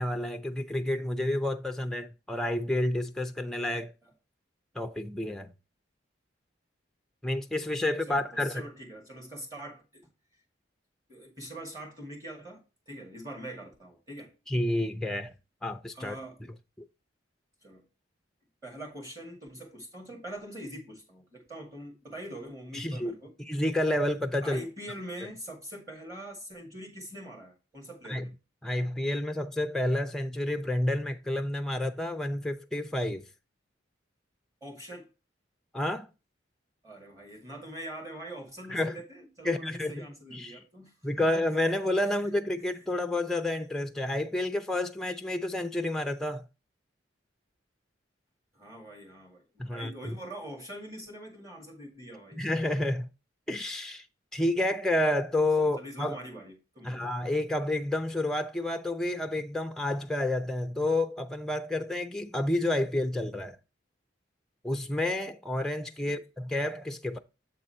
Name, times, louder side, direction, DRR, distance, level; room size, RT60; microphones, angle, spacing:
voice 1, 0.0-3.9 4.8-5.5 7.2-8.6 14.5-15.3 15.6-16.2 16.8-16.9 22.7-23.1 23.5-24.6 28.1-28.3 28.6-33.3 35.7-36.1 38.7-38.9 39.4-40.6 41.0-46.4 49.6-50.1 52.4-53.1 53.5-54.1 54.3-56.2 56.8-63.6 64.6-67.2, left 1 dB, 5° left, 0.4 m, -30 dB
voice 2, 8.1-10.1 11.1-14.3 15.9-16.4 17.6-17.8 18.6-23.3 24.4-28.3 34.6-35.1 36.8-41.3 42.0-42.2 48.5-52.4 55.6-57.1 66.0-66.2, right 1 dB, 15° right, 2.0 m, -43 dB
7.7 x 3.8 x 4.2 m
head